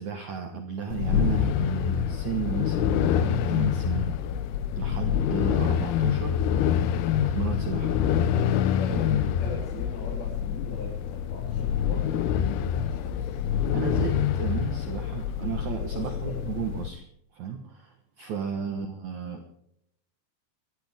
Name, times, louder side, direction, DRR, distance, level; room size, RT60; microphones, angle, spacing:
voice 1, 0.0-4.2 4.7-6.5 7.2-8.0 13.7-17.0 17.3-19.6, right 7 dB, 60° right, 5 dB, 2.0 m, -34 dB
sound 1, 0.9-16.9, left 9 dB, 75° left, 2.6 m, -26 dB
voice 2, 8.6-12.5 12.7-13.4 15.9-16.4 18.6-18.8, left 3 dB, 60° left, -1 dB, 4.8 m, -40 dB
25.5 x 12.5 x 3.5 m, 0.76 s
omnidirectional pair, 5.0 m